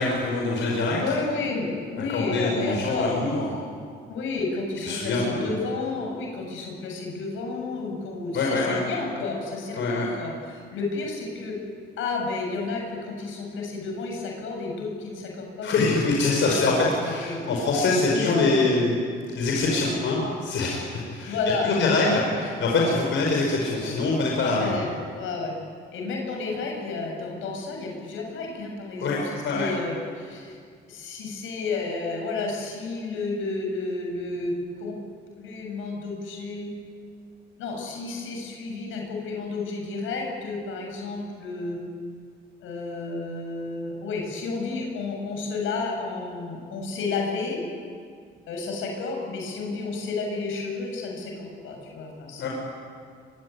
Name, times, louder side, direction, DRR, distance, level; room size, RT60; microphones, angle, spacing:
voice 1, 0.0-1.1 2.1-3.5 4.9-5.5 8.3-8.8 9.7-10.1 15.6-18.9 19.3-21.4 21.6-24.8 29.0-29.7 52.4-52.5, left 3 dB, 70° left, -1 dB, 5.5 m, -24 dB
voice 2, 1.0-3.1 4.1-11.6 12.0-15.8 16.2-17.4 17.7-18.9 19.6-19.9 21.2-22.0 22.8-23.0 24.4-25.5 25.9-30.6 30.8-35.0 35.4-36.7 37.6-41.8 42.6-47.6 48.5-52.5, left 3 dB, 85° left, 1 dB, 7.3 m, -31 dB
23.5 x 23.0 x 9.8 m, 2.1 s
cardioid pair, 90°, 20 cm